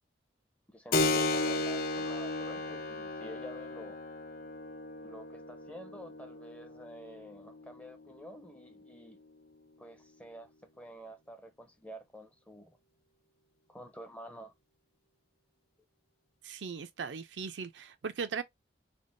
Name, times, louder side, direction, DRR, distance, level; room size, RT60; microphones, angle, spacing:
voice 1, 0.7-4.0 5.0-9.2 9.8-12.8 13.7-14.5, equal, 5° left, 0.5 m, -49 dB
Keyboard (musical), 0.9-9.1, left 2 dB, 50° left, 0.5 m, -35 dB
voice 2, 16.4-18.4, right 5 dB, 85° right, 0.5 m, -38 dB
3.4 x 2.1 x 2.5 m
head